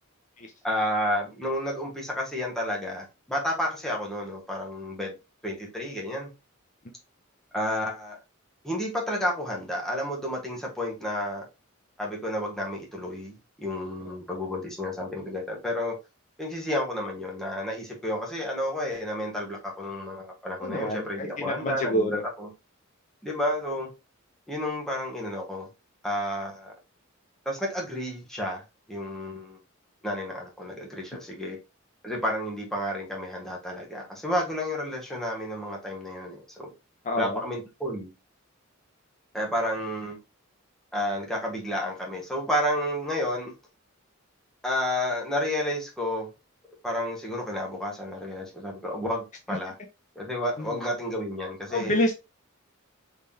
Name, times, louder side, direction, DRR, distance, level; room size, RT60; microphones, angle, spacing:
voice 1, 0.6-5.1 5.4-6.3 7.5-8.2 8.6-11.4 12.0-16.0 16.4-22.5 23.2-23.9 24.5-25.7 26.0-26.7 27.4-28.6 28.9-29.6 30.0-31.6 32.0-36.7 37.2-38.1 39.3-40.2 40.9-43.5 44.6-46.3 46.8-49.7 50.1-52.0, left 1 dB, ahead, 1.1 m, -31 dB
voice 2, 20.6-22.2 37.0-37.4 50.6-50.8 51.7-52.1, left 1 dB, 35° left, 0.5 m, -28 dB
3.7 x 3.2 x 2.7 m
head